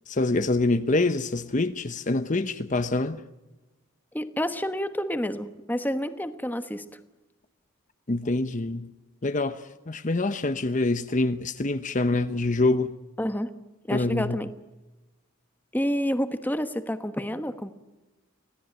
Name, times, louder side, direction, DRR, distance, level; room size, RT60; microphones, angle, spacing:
voice 1, 0.1-3.2 8.1-8.9 9.2-12.9 13.9-14.4, left 2 dB, 35° left, 0.8 m, -25 dB
voice 2, 4.1-6.8 13.2-13.5 13.9-14.5 15.7-17.7, equal, 10° left, 1.1 m, -29 dB
25.5 x 17.5 x 9.2 m
head